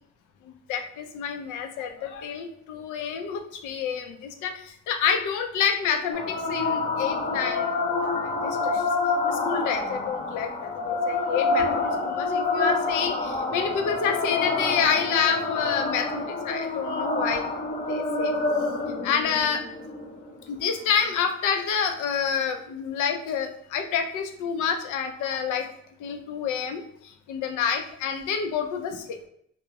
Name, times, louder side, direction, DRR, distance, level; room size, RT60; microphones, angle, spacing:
voice 1, 0.7-7.7 8.0-8.9 9.3-17.4 17.9-18.3 18.8-19.6 20.5-25.6 26.0-26.8 27.3-29.2, left 7 dB, 85° left, 5 dB, 0.5 m, -28 dB
sound 1, 6.1-21.1, left 3 dB, 25° left, 0.4 m, -27 dB
2.3 x 2.1 x 2.7 m, 0.69 s
cardioid pair, 90°, 30 cm